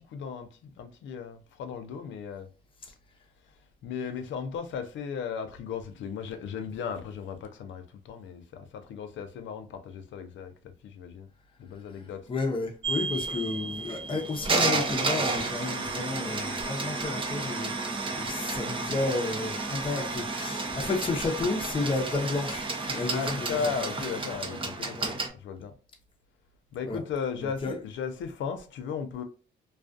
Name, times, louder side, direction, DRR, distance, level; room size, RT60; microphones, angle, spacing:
voice 1, 0.0-2.5 3.4-10.5 10.8-11.3 11.6-12.3 23.1-25.7 26.7-29.2, left 6 dB, 70° left, 0.5 m, -36 dB
voice 2, 12.3-23.6 24.5-24.6 25.0-25.1 26.8-27.0 27.6-27.8, left 3 dB, 25° left, 0.7 m, -32 dB
sound 1, 12.8-25.3, right 3 dB, 25° right, 0.5 m, -31 dB
2.4 x 2.3 x 2.4 m
cardioid pair, 90°, 20 cm